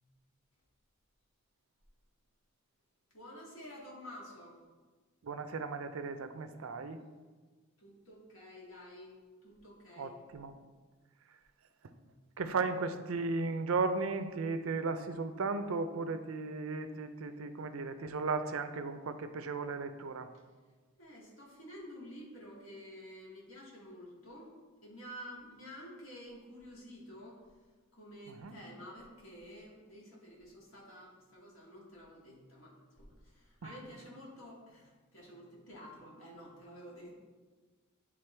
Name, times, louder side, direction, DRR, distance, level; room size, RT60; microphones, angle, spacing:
voice 1, 3.1-4.6 7.8-9.2 9.4-10.2 12.0-12.2 20.3-20.4 21.0-24.6 24.8-27.4 27.9-37.2, equal, 70° left, -4 dB, 2.1 m, -50 dB
voice 2, 5.2-7.0 10.0-10.5 12.4-20.3 28.3-28.6, right 4 dB, 80° right, 9 dB, 0.5 m, -35 dB
10.0 x 3.7 x 3.3 m, 1.4 s
head